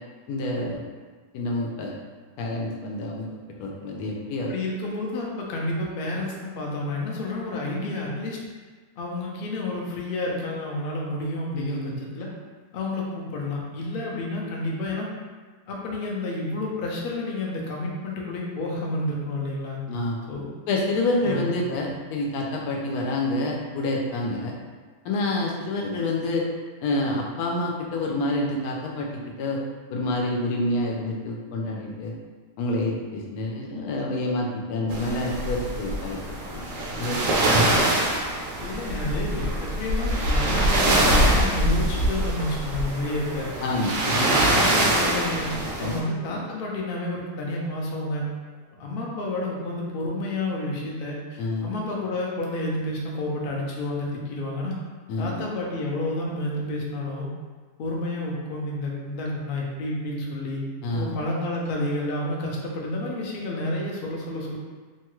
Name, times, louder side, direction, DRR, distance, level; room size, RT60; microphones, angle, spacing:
voice 1, 0.3-0.9 1.3-1.9 2.4-4.5 11.5-11.9 19.9-20.2 20.7-24.5 25.0-26.4 26.8-29.1 29.4-29.6 29.9-32.1 32.6-36.7 37.0-37.7 43.6-44.3 45.8-45.9 46.3-46.4 51.4-51.7 55.1-55.4 60.8-61.1, left 2 dB, 85° left, -1 dB, 1.1 m, -28 dB
voice 2, 4.5-8.4 9.0-12.3 12.7-15.1 15.7-19.8 20.3-20.4 21.2-21.6 38.6-43.5 44.0-45.5 45.8-48.3 48.7-54.8 55.2-57.3 57.8-60.6 60.9-64.6, left 1 dB, 65° left, -3 dB, 0.5 m, -30 dB
sound 1, 34.9-46.0, right 1 dB, 70° right, 0.9 m, -24 dB
2.9 x 2.3 x 2.9 m, 1.4 s
omnidirectional pair, 1.5 m